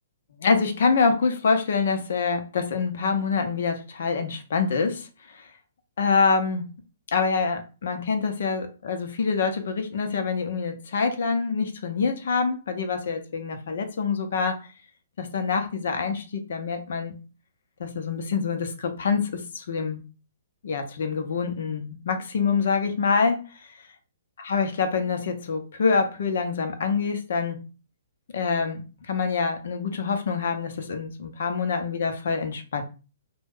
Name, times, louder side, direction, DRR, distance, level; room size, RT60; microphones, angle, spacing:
voice 1, 0.4-5.5 6.0-6.7 7.1-14.6 15.2-17.1 17.8-20.0 20.6-23.7 24.4-27.6 28.3-32.8, left 5 dB, 65° left, 0.7 m, -26 dB
3.0 x 2.2 x 3.5 m
figure-of-eight pair, 125°, 0 cm